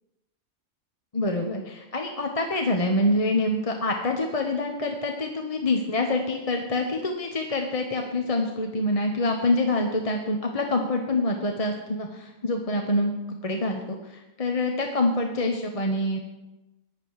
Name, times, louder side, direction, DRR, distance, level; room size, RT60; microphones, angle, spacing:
voice 1, 1.1-16.2, left 2 dB, 30° left, 3 dB, 1.0 m, -26 dB
14.5 x 9.9 x 4.7 m, 1.0 s
omnidirectional pair, 1.4 m